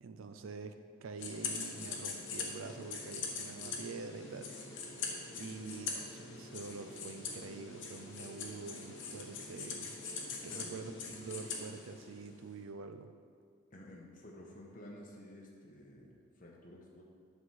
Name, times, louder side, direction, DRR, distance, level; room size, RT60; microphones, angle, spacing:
voice 1, 0.0-4.5 5.3-10.0 10.4-13.1, right 4 dB, 85° right, 9 dB, 0.5 m, -46 dB
sound 1, 1.2-12.4, left 4 dB, 65° left, 1.1 m, -43 dB
voice 2, 13.7-17.0, left 1 dB, 40° left, -2 dB, 1.2 m, -52 dB
7.2 x 4.4 x 6.4 m, 2.2 s
head